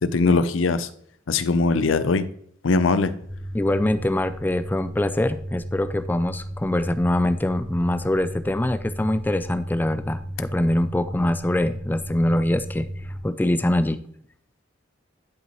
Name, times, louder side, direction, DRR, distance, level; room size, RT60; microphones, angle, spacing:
voice 1, 0.0-0.9 1.3-2.3 2.6-3.1, left 3 dB, 90° left, 14 dB, 0.6 m, -20 dB
sound 1, 3.2-13.2, equal, 40° right, 3.3 m, -35 dB
voice 2, 3.5-12.9 13.2-14.0, left 1 dB, 10° left, 13 dB, 0.3 m, -23 dB
10.5 x 5.6 x 3.0 m, 0.67 s
head